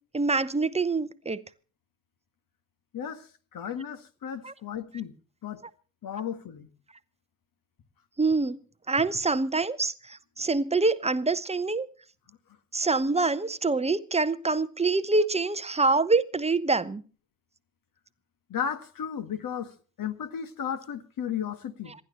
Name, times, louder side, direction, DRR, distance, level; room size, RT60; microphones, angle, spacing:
voice 1, 0.1-1.4 4.4-4.5 8.2-8.6 8.9-11.9 12.7-17.0, right 3 dB, 15° right, 1.0 m, -25 dB
voice 2, 2.9-5.2 5.4-5.7 6.0-6.7 12.3-12.4 18.5-21.9, left 8 dB, 45° left, 1.8 m, -34 dB
27.0 x 11.5 x 3.0 m
hypercardioid pair, 50°, 45 cm